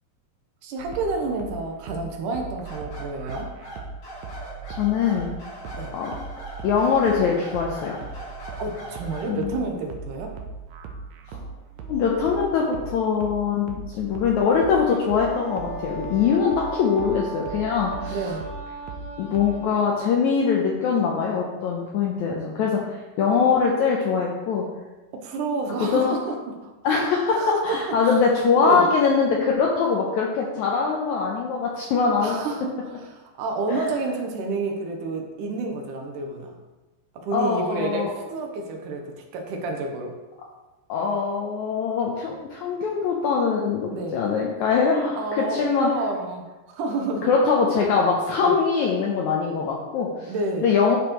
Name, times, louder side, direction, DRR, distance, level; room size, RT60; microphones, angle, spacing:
voice 1, 0.6-3.5 5.7-5.9 8.6-10.4 18.1-18.5 25.2-27.0 27.3-28.3 28.6-28.9 32.2-36.6 37.2-40.1 43.9-44.2 45.2-47.3 48.4-48.5 50.3-50.7, right 3 dB, 70° right, 2 dB, 2.2 m, -29 dB
Wet Square Techno Beat, 0.8-19.6, right 4 dB, 85° right, 1.6 m, -39 dB
sound 1, 2.6-9.4, equal, 45° left, 3.6 m, -40 dB
voice 2, 4.7-5.3 5.9-6.2 6.6-8.0 9.3-9.5 11.3-11.4 11.8-18.2 19.2-24.6 25.8-26.2 26.8-32.4 33.7-33.9 37.3-38.1 40.9-45.9 47.2-50.3 50.6-51.0, left 5 dB, 85° left, -1 dB, 1.7 m, -22 dB
Wind instrument woodwind instrument, 15.1-20.0, right 2 dB, 35° right, 1.4 m, -38 dB
10.5 x 5.2 x 3.1 m, 1.1 s
omnidirectional pair, 4.3 m